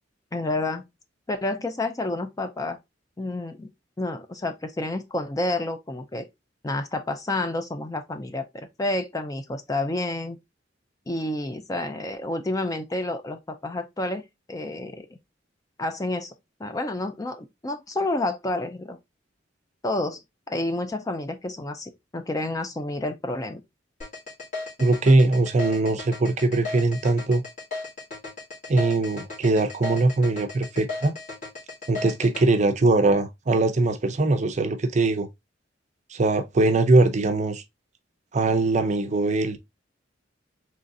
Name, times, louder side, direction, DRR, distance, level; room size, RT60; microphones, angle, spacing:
voice 1, 0.3-0.8 1.3-2.8 3.2-3.7 4.0-6.3 6.6-10.4 11.1-14.2 14.5-15.1 15.8-16.3 16.6-19.0 19.8-20.2 20.5-23.6, left 2 dB, 20° left, 0.4 m, -29 dB
sound 1, 24.0-32.4, left 3 dB, 45° left, 2.1 m, -35 dB
voice 2, 24.8-27.4 28.7-31.1 31.9-35.3 36.1-37.6 38.3-39.6, right 2 dB, 40° right, 0.5 m, -21 dB
3.8 x 3.1 x 2.6 m
head